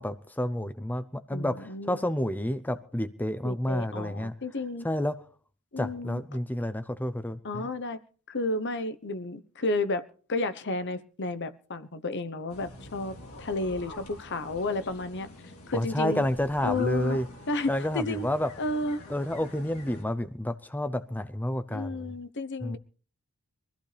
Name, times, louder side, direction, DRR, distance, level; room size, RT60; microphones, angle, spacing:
voice 1, 0.0-4.3 4.8-5.1 5.8-7.7 15.7-17.3 17.7-18.5 19.1-22.1 22.6-22.8, left 1 dB, 10° left, 11 dB, 0.7 m, -30 dB
voice 2, 1.3-2.0 3.4-4.9 5.7-6.2 7.4-8.0 8.3-10.0 10.3-15.3 15.7-16.2 16.6-17.2 17.5-18.3 18.6-19.0 21.7-22.8, left 2 dB, 55° left, 12 dB, 1.0 m, -32 dB
sound 1, 12.5-20.0, left 1 dB, 75° left, 3.5 m, -46 dB
23.0 x 14.5 x 3.4 m, 0.41 s
head